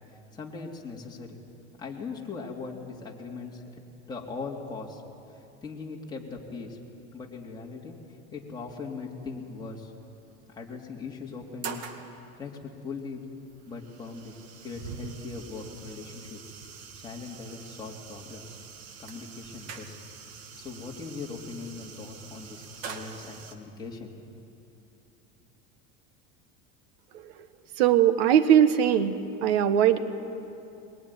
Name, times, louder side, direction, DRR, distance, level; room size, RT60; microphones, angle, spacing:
voice 1, 0.1-1.4 1.8-3.8 4.1-5.0 5.3-6.8 7.1-9.9 10.5-11.8 12.4-13.2 13.6-14.3 14.6-16.4 17.0-18.5 19.0-20.0 20.5-24.4, left 4 dB, 15° left, -3 dB, 3.0 m, -40 dB
sound 1, 8.5-8.8 10.0-10.1 10.6-10.7 11.2-12.1 13.1-23.5, right 6 dB, 55° right, 2.2 m, -44 dB
voice 2, 27.8-30.0, right 9 dB, 80° right, 11 dB, 1.4 m, -21 dB
22.0 x 21.5 x 10.0 m, 2.7 s
supercardioid pair, 145°, 31 cm